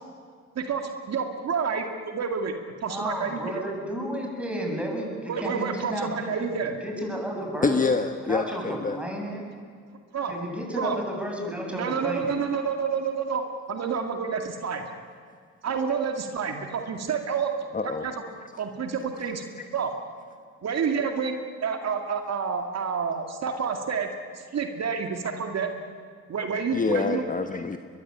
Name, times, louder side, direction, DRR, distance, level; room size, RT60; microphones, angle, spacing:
voice 1, 0.6-2.5 2.8-3.6 5.3-6.7 10.1-10.3 10.8-11.0 11.7-13.4 13.7-14.8 15.6-17.5 18.0-18.2 18.6-19.4 19.7-19.9 20.6-24.1 24.3-25.7 26.3-27.3, right 6 dB, 60° right, 5 dB, 2.3 m, -29 dB
voice 2, 2.8-7.8 8.2-9.4 10.3-12.3, equal, 5° right, 0 dB, 7.8 m, -32 dB
voice 3, 7.6-9.0 17.7-18.1 18.4-18.5 19.6-19.7 21.0-21.1 26.7-27.8, left 4 dB, 25° left, 7 dB, 1.3 m, -26 dB
22.5 x 22.0 x 8.9 m, 2.1 s
cardioid pair, 90°, 30 cm